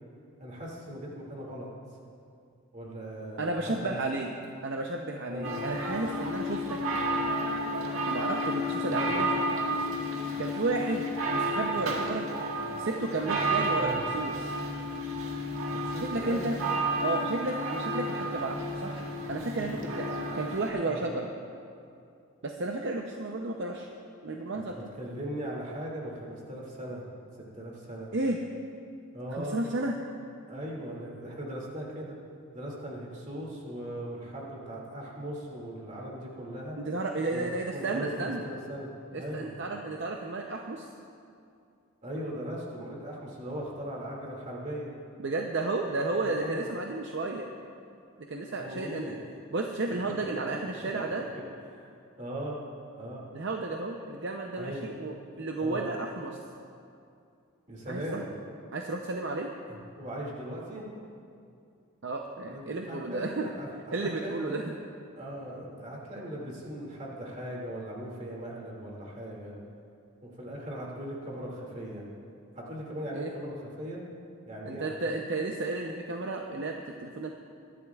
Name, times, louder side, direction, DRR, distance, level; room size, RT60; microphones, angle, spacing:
voice 1, 0.4-1.7 2.7-4.1 5.3-5.6 8.9-9.2 11.7-11.9 13.7-14.0 15.7-16.5 19.6-20.0 20.3-20.4 20.8-21.0 24.7-27.0 27.5-28.1 29.1-29.6 30.5-32.1 32.5-36.8 37.3-39.5 42.0-44.9 46.2-46.6 48.6-49.2 51.7-51.9 52.2-52.6 53.0-53.3 54.6-54.9 55.6-55.9 57.7-58.3 59.7-60.9 62.5-64.6 65.2-69.5 70.2-72.1 72.6-74.0 74.5-75.2, equal, 35° right, -3 dB, 2.2 m, -39 dB
voice 2, 3.4-4.3 4.6-6.8 8.1-9.3 10.4-12.3 12.8-14.5 16.0-16.6 17.0-19.0 19.3-20.1 20.3-21.3 22.4-23.9 24.2-24.9 28.1-28.4 29.3-30.0 36.8-38.5 39.1-40.9 45.2-47.5 48.3-49.2 49.5-51.3 53.3-56.4 57.9-58.2 58.7-59.5 62.0-63.5 63.9-64.7 73.1-73.3 74.7-77.3, right 2 dB, 55° right, 2 dB, 0.6 m, -32 dB
sound 1, 5.4-20.7, right 1 dB, 75° right, 1.6 m, -31 dB
22.5 x 11.0 x 2.4 m, 2.5 s
head